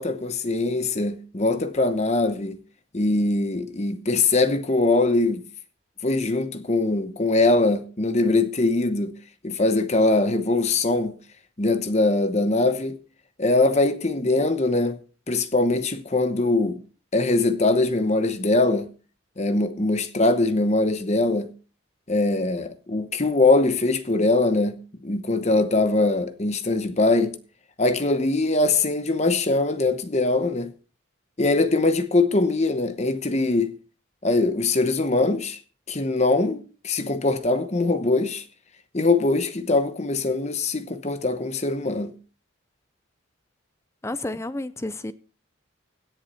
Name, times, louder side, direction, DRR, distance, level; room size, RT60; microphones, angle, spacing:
voice 1, 0.0-2.6 2.9-5.4 6.0-9.1 9.4-11.2 11.6-13.0 13.4-15.0 15.3-16.8 17.1-18.9 19.4-21.5 22.1-27.4 27.8-30.7 31.4-33.7 34.2-35.6 35.9-38.4 38.9-42.1, left 2 dB, 35° left, 1.0 m, -22 dB
voice 2, 44.0-45.1, left 2 dB, 15° left, 0.5 m, -31 dB
17.0 x 7.3 x 4.2 m
head